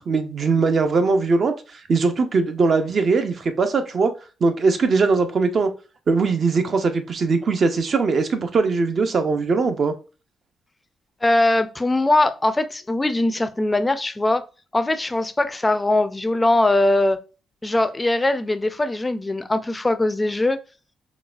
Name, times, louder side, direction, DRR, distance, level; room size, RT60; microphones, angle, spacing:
voice 1, 0.0-4.1 4.4-5.7 6.1-9.9, right 4 dB, 50° right, 0.5 m, -20 dB
voice 2, 11.2-14.4 14.7-17.2 17.6-20.6, left 2 dB, 15° left, 0.4 m, -21 dB
3.8 x 2.3 x 2.4 m
cardioid pair, 105°, 0 cm